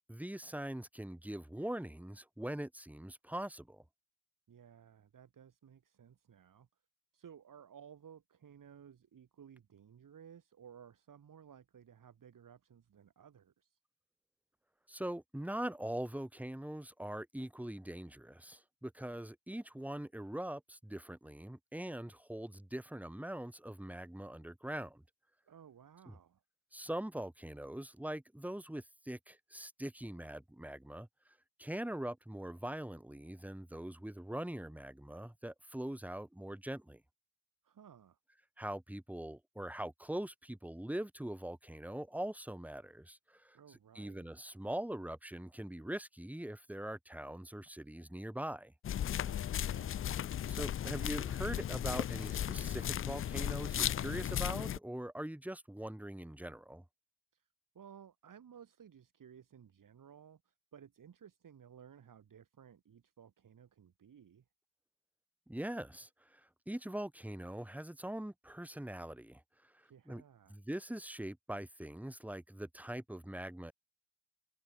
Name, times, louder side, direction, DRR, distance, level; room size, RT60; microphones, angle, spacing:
voice 1, 0.1-3.8 14.9-25.0 26.1-26.2 26.7-31.1 31.6-37.0 38.6-43.6 44.0-48.7 50.5-56.8 65.5-66.4 66.7-70.2 70.5-73.7, right 1 dB, 5° right, 1.9 m, -42 dB
voice 2, 4.5-6.7 7.1-13.8 25.5-26.4 37.6-38.2 43.5-44.3 49.2-50.3 57.3-57.5 57.7-64.4 69.8-70.6, right 8 dB, 45° right, 3.4 m, -57 dB
sound 1, 48.8-54.8, left 10 dB, 30° left, 0.4 m, -36 dB
supercardioid pair, 70°, 47 cm